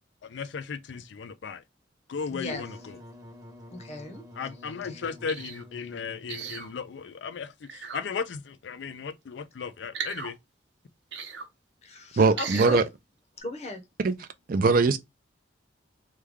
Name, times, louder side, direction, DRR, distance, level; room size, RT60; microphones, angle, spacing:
voice 1, 0.3-1.6 2.1-2.9 4.4-10.4, left 6 dB, 75° left, 0.4 m, -36 dB
voice 2, 2.3-2.7 3.7-4.2 4.9-5.0 11.8-12.8 13.4-13.8, left 1 dB, 35° left, 0.8 m, -37 dB
Wind instrument woodwind instrument, 2.4-7.0, left 1 dB, 20° right, 0.9 m, -49 dB
sound 1, 5.3-5.6 6.3-6.7 7.6-8.0 9.9-10.3 11.1-11.5 12.4-12.8 13.4-13.5, right 6 dB, 70° right, 0.8 m, -36 dB
voice 3, 12.2-12.8 14.0-14.1 14.5-15.0, right 4 dB, 50° right, 0.4 m, -21 dB
3.2 x 2.2 x 3.5 m
head